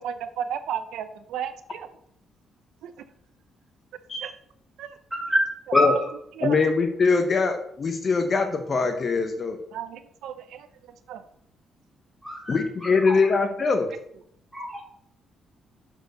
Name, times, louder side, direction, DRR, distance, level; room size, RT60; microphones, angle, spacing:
voice 1, 0.0-1.9 2.8-2.9 4.2-4.4 4.8-5.0 5.8-6.0 6.4-6.6 9.7-10.7 11.1-11.2, right 9 dB, 80° right, 11 dB, 0.5 m, -33 dB
voice 2, 5.1-6.1 12.2-13.2 14.5-14.8, left 1 dB, ahead, -2 dB, 3.0 m, -26 dB
voice 3, 6.4-9.6 12.5-13.9, left 4 dB, 40° left, 6 dB, 0.8 m, -22 dB
6.5 x 4.5 x 5.2 m, 0.69 s
cardioid pair, 90°, 0 cm